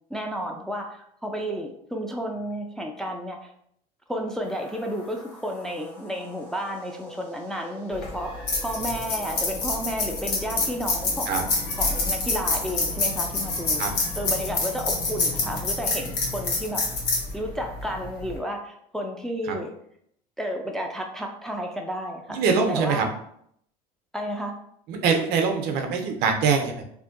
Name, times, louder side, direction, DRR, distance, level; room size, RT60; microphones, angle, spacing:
voice 1, 0.1-3.5 4.1-11.5 11.8-13.8 14.2-16.8 17.3-19.7 20.4-22.4 22.7-23.0 24.1-24.5, equal, ahead, 1 dB, 0.3 m, -32 dB
sound 1, 4.4-16.0, left 1 dB, 85° left, 1.2 m, -44 dB
sound 2, 7.9-18.4, left 3 dB, 65° left, 0.9 m, -27 dB
voice 2, 22.3-23.1 24.9-26.8, right 5 dB, 65° right, 4 dB, 0.5 m, -23 dB
2.5 x 2.2 x 2.4 m, 0.70 s
supercardioid pair, 85°, 18 cm